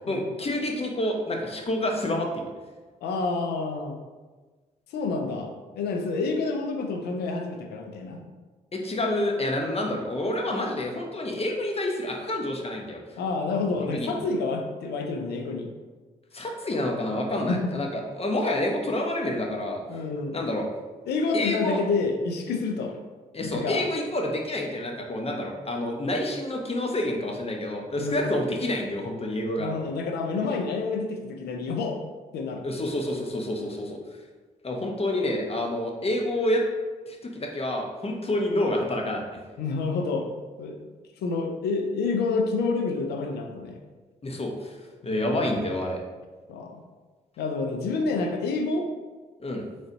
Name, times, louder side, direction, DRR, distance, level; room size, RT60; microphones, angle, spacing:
voice 1, 0.1-2.4 8.7-13.0 13.8-14.1 16.3-19.8 20.3-20.6 21.3-21.8 23.3-29.7 32.6-34.0 34.6-36.6 37.1-39.4 44.2-44.8 45.0-46.0 49.4-49.7, left 1 dB, 35° left, 1 dB, 1.0 m, -28 dB
voice 2, 3.0-4.0 4.9-8.2 13.2-15.7 17.5-17.7 19.9-20.4 21.1-23.0 23.5-23.8 28.0-28.2 29.6-32.0 32.3-32.6 39.6-40.3 40.6-40.8 41.2-43.8 46.5-46.8 47.4-48.9, left 4 dB, 80° left, 3 dB, 0.6 m, -28 dB
4.0 x 3.3 x 4.0 m, 1.3 s
hypercardioid pair, 45°, 17 cm